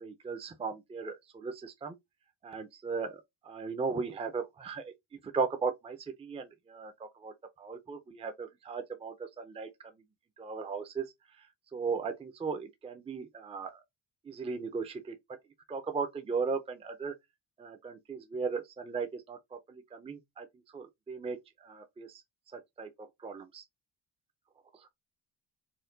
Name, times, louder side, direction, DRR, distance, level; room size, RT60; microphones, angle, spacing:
voice 1, 0.0-1.9 2.4-3.2 3.5-4.9 5.3-6.9 7.2-7.3 7.6-9.7 10.4-11.0 11.7-13.8 14.3-15.1 15.7-17.1 17.6-19.4 19.7-20.5 20.7-21.4 21.6-22.1 22.8-22.9 23.2-23.6, right 5 dB, 15° right, 0.5 m, -36 dB
4.3 x 2.2 x 3.8 m
cardioid pair, 150°, 43 cm